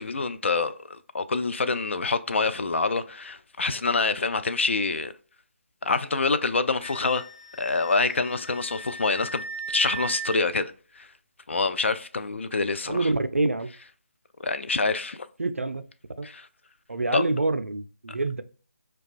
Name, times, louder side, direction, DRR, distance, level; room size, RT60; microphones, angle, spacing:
voice 1, 0.0-5.1 5.8-7.2 7.6-11.1 11.5-13.1 14.4-15.3 16.2-16.5 17.1-17.2, left 3 dB, 65° left, 0.3 m, -26 dB
Wind instrument woodwind instrument, 6.8-10.4, right 4 dB, 30° left, 1.5 m, -38 dB
voice 2, 12.9-13.7 15.4-15.8 16.2-16.3 16.9-18.4, right 2 dB, 85° right, 0.3 m, -26 dB
4.7 x 2.2 x 2.4 m
figure-of-eight pair, 150°, 7 cm